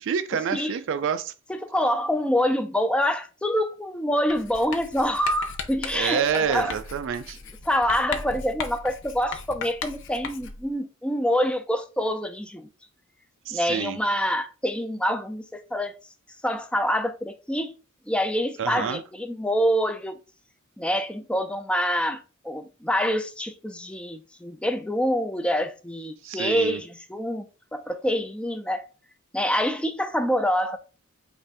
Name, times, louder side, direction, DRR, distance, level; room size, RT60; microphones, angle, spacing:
voice 1, 0.0-1.3 5.9-7.4 13.5-14.0 18.6-19.0 26.2-26.8, right 7 dB, 60° right, 0.4 m, -27 dB
voice 2, 1.5-6.8 7.7-12.7 13.5-15.9 16.4-17.7 18.1-20.2 20.8-27.5 27.7-28.9 29.3-30.8, equal, 5° left, 0.4 m, -26 dB
Writing, 4.3-10.7, left 5 dB, 60° left, 0.6 m, -37 dB
5.3 x 2.5 x 3.4 m
head